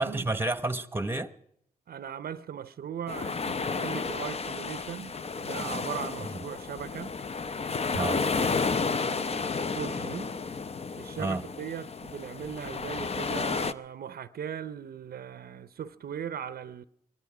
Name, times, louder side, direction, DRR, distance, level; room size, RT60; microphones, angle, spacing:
voice 1, 0.0-1.3 6.3-6.4 7.9-8.2 11.2-11.4, right 2 dB, 15° right, 0.9 m, -30 dB
voice 2, 1.9-5.1 5.4-7.1 8.0-10.3 11.0-16.8, right 8 dB, 75° right, 0.5 m, -39 dB
sound 1, 3.1-13.7, left 4 dB, 40° left, 0.6 m, -32 dB
19.5 x 13.5 x 4.9 m
cardioid pair, 50°, 16 cm